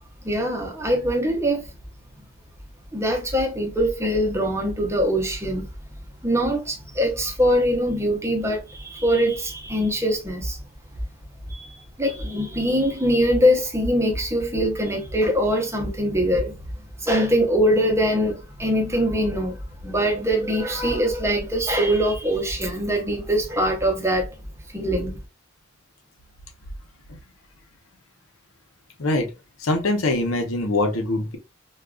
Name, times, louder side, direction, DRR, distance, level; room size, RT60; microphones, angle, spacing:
voice 1, 0.2-1.6 2.9-5.6 6.2-10.6 11.5-16.5 17.0-19.6 19.8-24.3 24.7-25.2, equal, 15° right, 0.7 m, -22 dB
voice 2, 29.0-29.3 29.6-31.4, left 2 dB, 85° left, 0.7 m, -23 dB
3.6 x 2.3 x 2.3 m
head